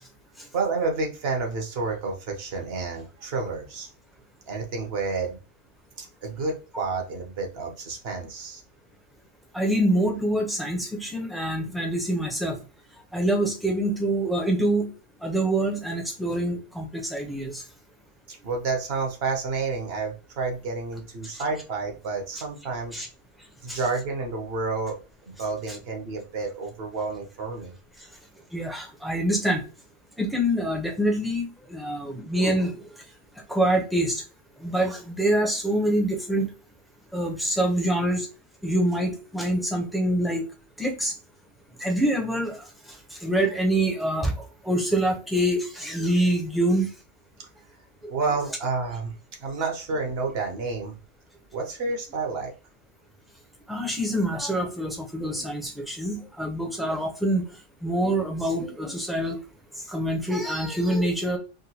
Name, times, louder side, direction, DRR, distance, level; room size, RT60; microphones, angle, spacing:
voice 1, 0.5-3.9 4.5-5.4 6.0-8.6 18.3-23.0 23.6-25.0 25.2-27.7 48.1-49.1 49.4-51.0 51.5-52.5, right 4 dB, 55° right, 2 dB, 1.0 m, -30 dB
voice 2, 9.5-12.6 13.1-14.9 15.2-17.6 21.3-21.4 22.9-23.1 23.7-23.8 25.7-25.8 28.5-29.6 30.2-32.9 33.5-34.2 34.6-36.5 37.1-38.3 38.6-40.4 40.8-41.1 41.8-42.6 43.1-46.9 48.0-48.1 53.7-57.4 57.8-59.4 59.9-61.4, right 1 dB, ahead, 0 dB, 0.5 m, -25 dB
3.6 x 2.2 x 2.8 m, 0.33 s
omnidirectional pair, 1.3 m